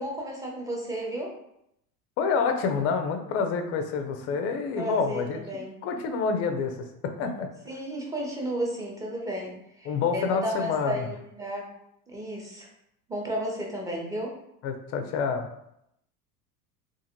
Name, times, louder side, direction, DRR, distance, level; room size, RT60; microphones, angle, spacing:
voice 1, 0.0-1.3 4.8-5.7 7.7-11.7 12.1-12.7 13.1-14.3, right 1 dB, 5° right, -2 dB, 0.7 m, -33 dB
voice 2, 2.2-5.4 5.8-7.5 9.9-11.1 14.6-15.5, left 5 dB, 35° left, 6 dB, 0.4 m, -28 dB
2.5 x 2.5 x 2.8 m, 0.77 s
hypercardioid pair, 90°, 46 cm